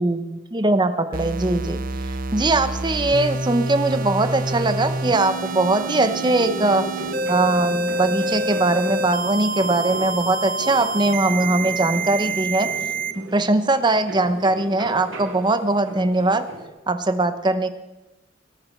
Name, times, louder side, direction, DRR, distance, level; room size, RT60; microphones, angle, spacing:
voice 1, 0.0-1.8 2.3-6.9 7.3-12.7 13.2-16.4 16.9-17.7, right 2 dB, 25° right, 10 dB, 0.9 m, -21 dB
sound 1, 1.1-13.1, right 2 dB, 45° right, 0.7 m, -27 dB
sound 2, 3.9-16.7, equal, 80° right, 2.7 m, -37 dB
sound 3, 5.0-10.1, left 3 dB, 25° left, 2.1 m, -39 dB
18.0 x 9.5 x 6.6 m, 1.1 s
head